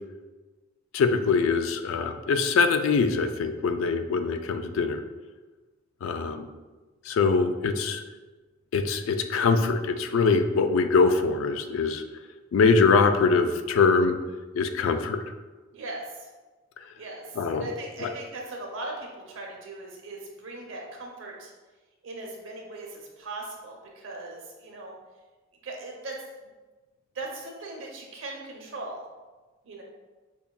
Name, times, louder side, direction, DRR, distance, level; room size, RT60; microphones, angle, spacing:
voice 1, 0.9-5.0 6.0-6.5 7.1-8.0 8.7-12.0 12.5-14.2 14.6-15.2 17.4-17.7 18.0-18.1, left 4 dB, 70° left, 8 dB, 0.3 m, -23 dB
voice 2, 15.7-16.3 17.0-17.2 17.5-21.5 22.0-24.9 25.6-26.5 27.1-29.0 29.6-29.8, right 2 dB, 70° right, 0 dB, 0.7 m, -39 dB
5.3 x 2.3 x 2.2 m, 1.3 s
head